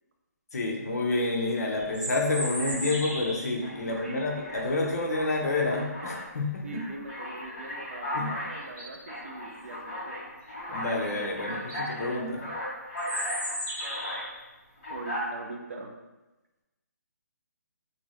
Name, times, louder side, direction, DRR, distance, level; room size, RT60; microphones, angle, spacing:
voice 1, 0.5-6.6 8.1-8.3 10.7-12.5, left 2 dB, 65° left, 0 dB, 0.7 m, -29 dB
Alarm, 1.8-2.0 2.4-3.1 3.6-6.3 6.7-14.3 14.8-15.3, left 1 dB, 25° left, 1.1 m, -37 dB
sound 1, 1.8-3.6 8.1-8.2 8.6-9.0 11.1-11.2 11.5-11.8 13.0-14.4, equal, 30° right, 1.3 m, -35 dB
voice 2, 3.8-4.3 6.6-10.2 14.9-15.9, right 3 dB, 50° right, 3 dB, 0.4 m, -42 dB
2.7 x 2.6 x 3.0 m, 1.1 s
hypercardioid pair, 175°, 9 cm